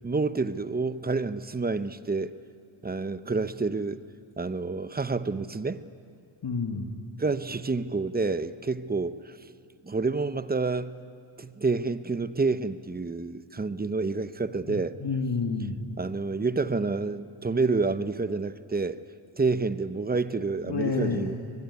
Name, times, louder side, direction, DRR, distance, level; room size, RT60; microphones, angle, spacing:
voice 1, 0.0-2.3 2.8-4.0 4.4-5.8 7.2-9.4 9.8-11.0 11.4-15.0 16.0-19.0 19.4-21.4, right 3 dB, 20° right, 0.8 m, -28 dB
voice 2, 6.4-6.9 14.7-15.8 20.6-21.3, left 4 dB, 55° left, 2.1 m, -29 dB
23.0 x 21.5 x 9.6 m
cardioid pair, 85°, 50 cm